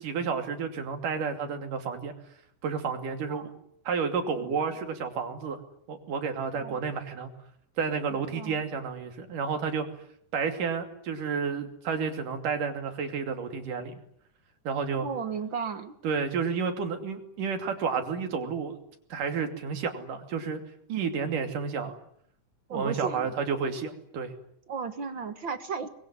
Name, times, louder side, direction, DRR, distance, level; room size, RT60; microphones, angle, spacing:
voice 1, 0.0-2.1 2.6-3.5 3.9-5.6 5.9-7.3 7.8-9.9 10.3-13.9 14.7-15.1 16.0-18.7 19.1-20.6 20.9-22.0 22.7-24.3, right 5 dB, 75° right, 6 dB, 4.3 m, -31 dB
voice 2, 8.3-8.6 15.0-15.9 22.7-23.3 24.7-25.9, right 6 dB, 50° right, 10 dB, 1.7 m, -34 dB
25.0 x 22.0 x 9.9 m, 0.68 s
omnidirectional pair, 3.7 m